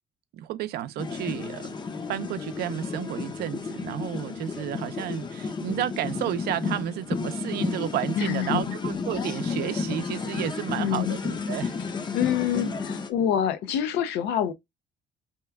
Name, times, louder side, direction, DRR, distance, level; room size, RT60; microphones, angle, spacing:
voice 1, 0.3-1.8 2.1-11.8, right 11 dB, 70° right, 0.5 m, -32 dB
sound 1, 1.0-13.1, left 4 dB, 25° left, 0.6 m, -32 dB
voice 2, 8.1-8.6 10.8-11.2 12.1-14.5, left 9 dB, 85° left, 0.5 m, -26 dB
2.9 x 2.3 x 3.2 m
cardioid pair, 110°, 17 cm